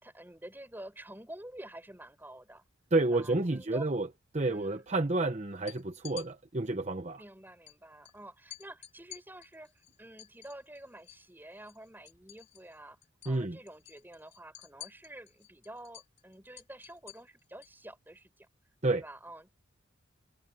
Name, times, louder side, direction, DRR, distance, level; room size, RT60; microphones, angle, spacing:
voice 1, 0.0-2.6 3.1-3.9 4.5-4.9 7.2-13.0 13.2-18.5 19.0-19.6, right 1 dB, 10° right, 4.3 m, -49 dB
voice 2, 2.9-4.1 4.3-7.2 13.3-13.6 18.8-19.0, right 2 dB, 35° right, 0.9 m, -30 dB
sound 1, 5.5-6.3 7.7-7.8 8.0-8.2 8.5-11.3 11.6-12.8 13.0-13.4 13.7-17.8, left 15 dB, 35° left, 2.9 m, -50 dB
head